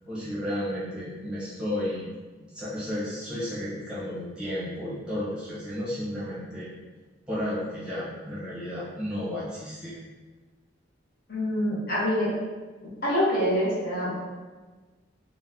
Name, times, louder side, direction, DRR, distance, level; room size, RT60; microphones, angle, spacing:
voice 1, 0.0-2.1 2.4-6.7 7.3-10.0, left 1 dB, 5° right, -10 dB, 0.8 m, -33 dB
voice 2, 11.3-12.4 12.8-14.1, equal, 50° left, -7 dB, 0.9 m, -26 dB
2.8 x 2.1 x 3.5 m, 1.3 s
head